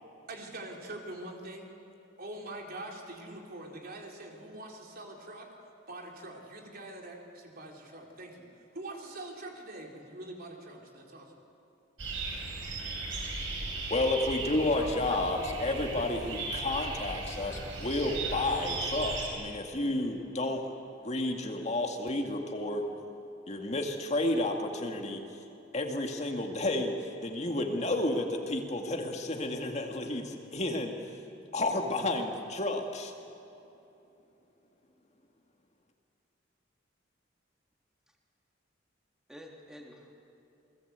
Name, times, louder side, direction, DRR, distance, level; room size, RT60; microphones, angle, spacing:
voice 1, 0.3-1.7 2.2-5.5 5.9-8.5 8.7-11.3, right 1 dB, 55° right, 1 dB, 3.7 m, -44 dB
sound 1, 12.0-19.3, right 3 dB, 85° right, 6.0 m, -37 dB
voice 2, 13.9-20.7 21.0-22.8 23.5-25.2 25.7-31.0 31.5-33.1, left 2 dB, 35° left, 3 dB, 2.1 m, -31 dB
voice 3, 14.7-15.2 39.3-40.1, equal, 5° right, 0 dB, 3.3 m, -47 dB
28.5 x 20.0 x 8.2 m, 2.9 s
head